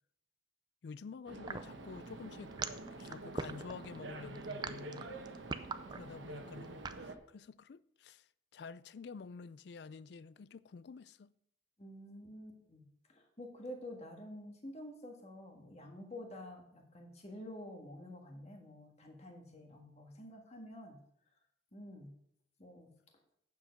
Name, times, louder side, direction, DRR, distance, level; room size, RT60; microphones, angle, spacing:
voice 1, 0.8-2.6 3.0-5.1 5.9-8.3 8.5-11.3, left 5 dB, 60° left, 0.3 m, -49 dB
sound 1, 1.3-7.2, right 2 dB, 75° right, 1.1 m, -47 dB
sound 2, 1.5-7.1, right 4 dB, 20° right, 0.4 m, -41 dB
voice 2, 11.8-12.8 13.1-21.0 21.7-22.1 22.6-22.9, left 1 dB, 35° left, 1.6 m, -49 dB
9.0 x 7.1 x 5.2 m
head